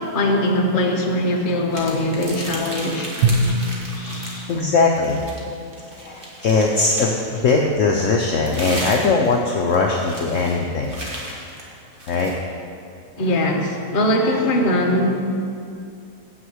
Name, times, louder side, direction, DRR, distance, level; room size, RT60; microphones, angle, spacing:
voice 1, 0.0-3.1 4.0-4.4 13.2-15.3, left 1 dB, 40° left, 1 dB, 1.0 m, -21 dB
sound 1, 1.7-4.6 4.9-7.3 8.0-12.4, right 1 dB, 35° right, 1.4 m, -34 dB
Drum, 3.2-5.6, right 2 dB, 70° right, 1.0 m, -24 dB
voice 2, 4.5-5.3 6.0-11.0 12.1-12.4 14.2-14.4, left 4 dB, 65° left, 0 dB, 0.9 m, -20 dB
7.0 x 6.2 x 7.7 m, 2.4 s
omnidirectional pair, 1.6 m